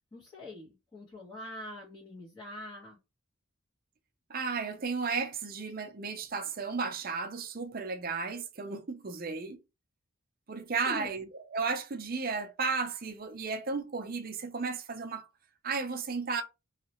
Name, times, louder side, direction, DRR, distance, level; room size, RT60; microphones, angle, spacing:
voice 1, 0.1-3.0 10.8-11.1, left 1 dB, 20° left, 1.3 m, -44 dB
voice 2, 4.3-9.6 10.5-11.3 11.5-15.3 15.6-16.4, right 4 dB, 45° right, 0.6 m, -34 dB
3.2 x 2.8 x 3.0 m
head